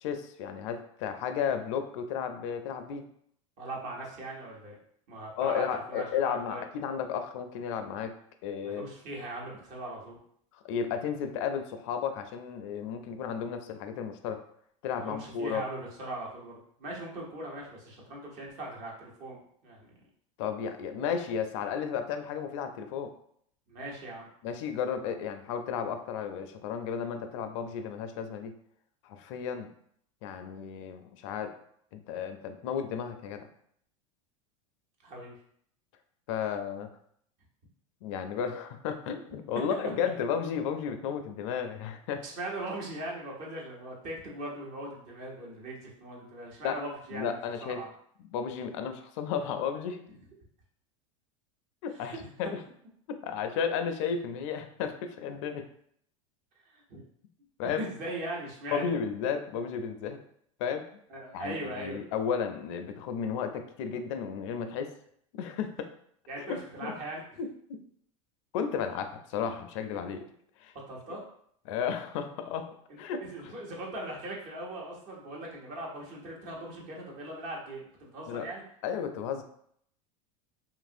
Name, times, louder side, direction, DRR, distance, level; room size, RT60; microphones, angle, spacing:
voice 1, 0.0-3.1 5.4-8.1 8.4-8.9 10.5-14.4 14.8-15.6 20.4-23.1 24.4-28.5 29.0-29.7 30.2-31.5 31.9-33.5 36.3-36.9 38.0-42.2 46.6-46.8 47.1-47.8 48.3-50.0 51.8-52.5 53.2-55.6 57.6-57.8 58.7-60.2 60.6-60.8 61.3-64.9 65.3-65.9 66.4-67.0 67.4-67.8 68.5-70.2 70.6-70.7 71.7-72.7 73.0-73.5 78.3-78.5 78.8-79.4, left 7 dB, 65° left, 7 dB, 0.4 m, -33 dB
voice 2, 3.6-4.8 5.1-6.6 8.6-10.2 14.9-19.4 19.6-19.9 23.7-24.3 35.0-35.3 42.2-47.9 51.9-52.2 56.6-57.0 57.6-59.0 61.1-62.0 66.3-67.2 70.9-71.2 72.9-78.6, right 1 dB, 50° right, -2 dB, 1.1 m, -40 dB
2.9 x 2.5 x 2.5 m, 0.67 s
hypercardioid pair, 105°, 17 cm